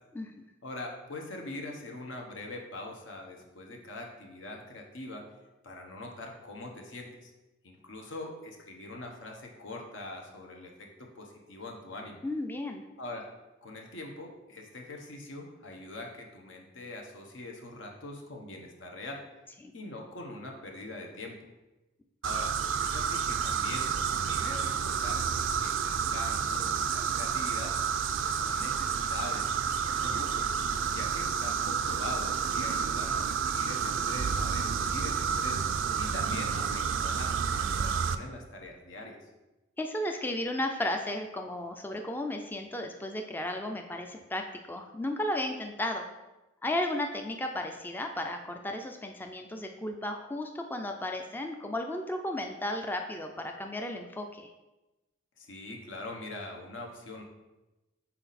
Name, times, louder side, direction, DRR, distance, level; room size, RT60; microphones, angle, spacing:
voice 1, 0.6-5.2 5.6-7.3 7.6-12.2 13.0-13.3 13.6-19.2 19.7-21.5 22.2-22.5 22.8-27.7 28.1-30.5 30.9-35.7 36.0-39.2 55.4-57.2, left 2 dB, 75° left, 1 dB, 1.0 m, -43 dB
voice 2, 12.2-12.8 19.6-19.7 39.8-46.1 46.6-54.5, left 1 dB, 10° left, 4 dB, 0.3 m, -34 dB
sound 1, 22.2-38.2, right 6 dB, 75° right, 0.4 m, -30 dB
5.9 x 4.1 x 4.1 m, 1.0 s
head